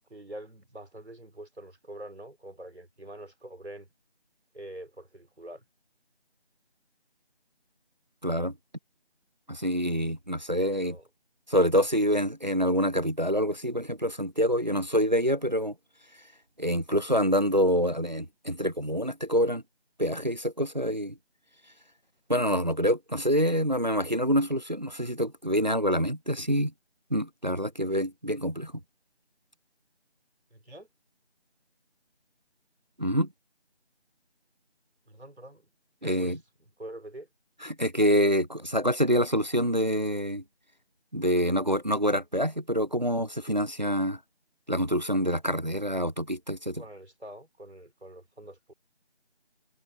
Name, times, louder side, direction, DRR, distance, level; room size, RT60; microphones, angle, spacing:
voice 1, 0.0-3.9 4.5-5.6 10.7-11.0 30.5-30.9 35.1-35.7 36.0-37.3 46.8-48.7, right 1 dB, 85° right, 4.8 m, -45 dB
voice 2, 8.2-8.5 9.5-11.0 11.5-15.7 16.6-19.6 20.0-21.1 22.3-26.7 27.1-28.7 33.0-33.3 36.0-36.4 37.6-40.4 41.1-44.2 44.7-46.8, equal, 45° right, 0.5 m, -26 dB
figure-of-eight pair, 175°, 32 cm